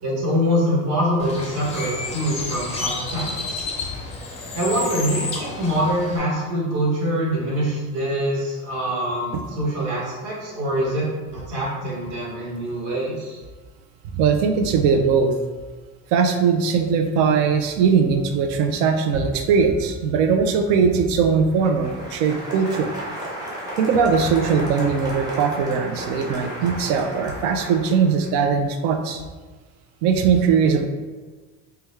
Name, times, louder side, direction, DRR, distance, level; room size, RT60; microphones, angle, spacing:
voice 1, 0.0-3.6 4.5-11.1 11.3-13.4, equal, 50° right, -6 dB, 1.1 m, -24 dB
Bird, 1.2-6.2, left 3 dB, 20° left, 0.4 m, -30 dB
voice 2, 14.1-15.4 16.1-22.9 23.8-29.2 30.0-30.8, right 6 dB, 80° right, 6 dB, 0.5 m, -20 dB
Applause, 21.3-28.3, right 1 dB, 10° right, 0.7 m, -34 dB
3.4 x 2.3 x 3.1 m, 1.3 s
cardioid pair, 150°, 33 cm